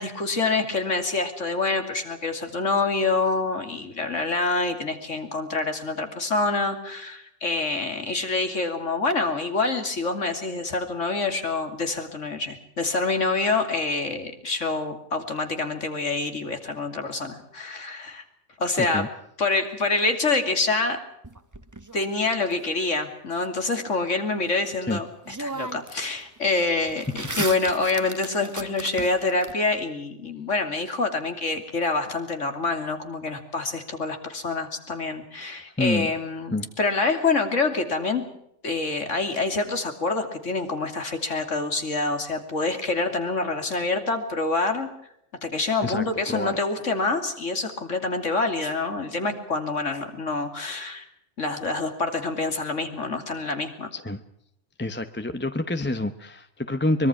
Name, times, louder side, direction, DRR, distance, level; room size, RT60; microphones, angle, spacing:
voice 1, 0.0-18.2 18.6-19.1 19.4-21.0 21.9-38.3 38.6-44.9 45.4-51.0 51.4-53.9, left 3 dB, 85° left, 6 dB, 3.2 m, -26 dB
voice 2, 18.8-19.1 24.9-25.0 35.8-36.1 36.5-36.7 45.8-46.6 53.9-54.2 54.8-57.1, left 1 dB, 10° left, 8 dB, 0.7 m, -27 dB
sound 1, 21.2-22.5 24.8-24.9 25.3-26.1 26.4-29.5, right 2 dB, 15° right, 1.1 m, -36 dB
24.0 x 22.5 x 6.1 m, 0.76 s
omnidirectional pair, 1.2 m